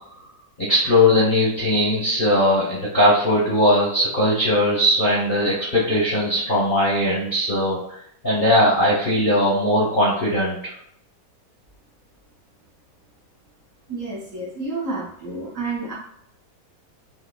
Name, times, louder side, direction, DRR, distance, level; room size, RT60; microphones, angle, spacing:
voice 1, 0.6-7.8 8.2-10.7, left 1 dB, 45° left, -6 dB, 0.6 m, -19 dB
voice 2, 13.9-15.9, right 3 dB, 55° right, -5 dB, 1.0 m, -30 dB
5.6 x 2.0 x 2.3 m, 0.69 s
omnidirectional pair, 2.0 m